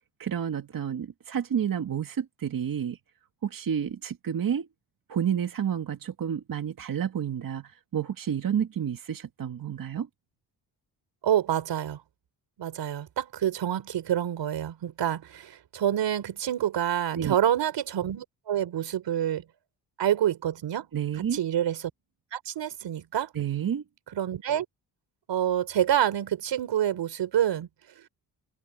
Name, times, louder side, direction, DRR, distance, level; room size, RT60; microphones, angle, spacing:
voice 1, 0.2-3.0 3.4-4.7 5.1-10.1 17.1-17.4 20.9-21.4 23.3-23.8, right 8 dB, 50° right, 2.1 m, -30 dB
voice 2, 11.2-12.0 12.6-19.4 20.0-20.9 21.3-21.8 22.3-23.3 24.1-24.7 25.3-27.7, right 10 dB, 85° right, 4.1 m, -27 dB
cardioid pair, 125°, 42 cm